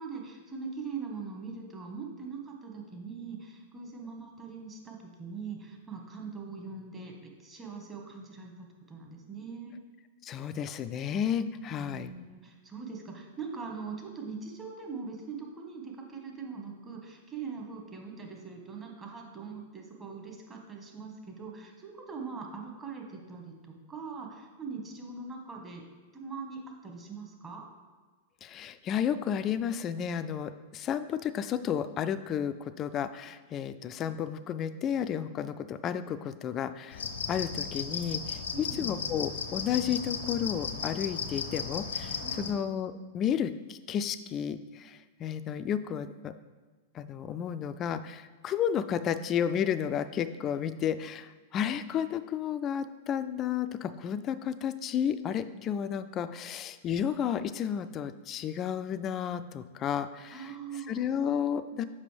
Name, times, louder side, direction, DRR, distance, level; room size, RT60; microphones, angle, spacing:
voice 1, 0.0-9.8 11.8-25.8 26.1-27.7 38.5-38.9 42.2-42.5 60.3-61.1, right 5 dB, 20° right, 1 dB, 1.2 m, -42 dB
voice 2, 10.2-12.1 28.4-46.3 46.9-61.8, left 8 dB, 35° left, 12 dB, 0.3 m, -32 dB
sound 1, 36.9-42.5, left 5 dB, 80° left, 0.6 m, -35 dB
6.8 x 5.1 x 3.3 m, 1.4 s
hypercardioid pair, 105°, 0 cm